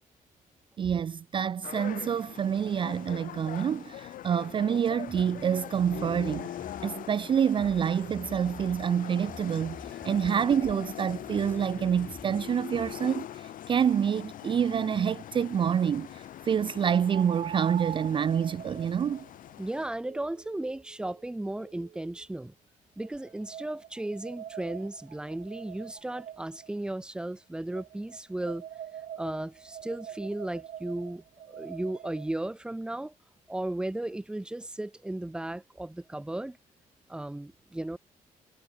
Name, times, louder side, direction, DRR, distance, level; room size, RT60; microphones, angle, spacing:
voice 1, 0.8-6.5 6.8-9.8 10.0-19.2, right 8 dB, 35° right, 0.5 m, -27 dB
sound 1, 1.6-19.9, left 11 dB, 70° left, 3.9 m, -42 dB
sound 2, 5.1-13.1, left 2 dB, 15° left, 4.2 m, -50 dB
sound 3, 14.5-14.6 17.1-22.2 23.0-26.7 27.7-32.3, right 10 dB, 60° right, 6.6 m, -44 dB
voice 2, 19.6-22.5 23.0-28.7 29.2-33.1 33.5-36.6 37.1-38.0, right 1 dB, 5° right, 0.8 m, -35 dB
cardioid pair, 160°, 15 cm